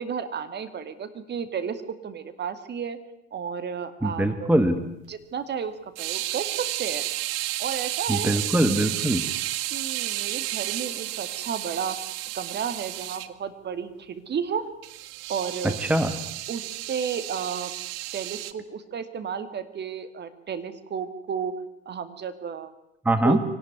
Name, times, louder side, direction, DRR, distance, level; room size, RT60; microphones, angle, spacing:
voice 1, 0.0-3.0 3.3-4.5 5.1-5.7 6.0-7.0 7.6-8.3 9.7-12.0 12.3-14.6 15.3-15.8 16.5-17.7 18.1-21.5 21.9-22.7 23.2-23.4, right 7 dB, 30° right, 10 dB, 2.4 m, -32 dB
voice 2, 4.0-4.9 8.1-9.2 15.6-16.1 23.1-23.4, right 1 dB, 5° right, 9 dB, 1.8 m, -22 dB
sound 1, 6.0-13.3 14.8-18.5, right 16 dB, 55° right, 1.4 m, -32 dB
24.5 x 18.5 x 9.4 m, 0.82 s
figure-of-eight pair, 70°, 34 cm